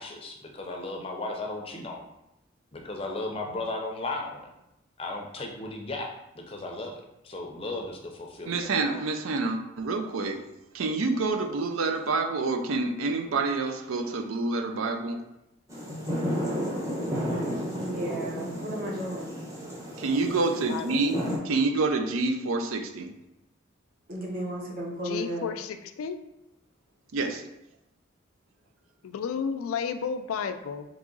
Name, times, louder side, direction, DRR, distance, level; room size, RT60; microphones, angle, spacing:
voice 1, 0.0-2.0 2.7-4.5 5.0-6.9 7.2-9.0, left 2 dB, 25° left, 1 dB, 0.5 m, -35 dB
voice 2, 8.5-10.4 10.7-15.2 20.0-21.2 21.4-23.1 27.1-27.4, right 3 dB, 80° right, 6 dB, 0.5 m, -27 dB
sound 1, 15.7-21.4, equal, 15° right, 0.8 m, -32 dB
voice 3, 17.6-19.3 24.1-25.5, right 1 dB, 45° right, -2 dB, 0.9 m, -34 dB
voice 4, 20.2-20.9 25.0-26.2 29.0-30.8, left 6 dB, 90° left, 9 dB, 0.4 m, -32 dB
3.7 x 3.0 x 3.8 m, 0.88 s
head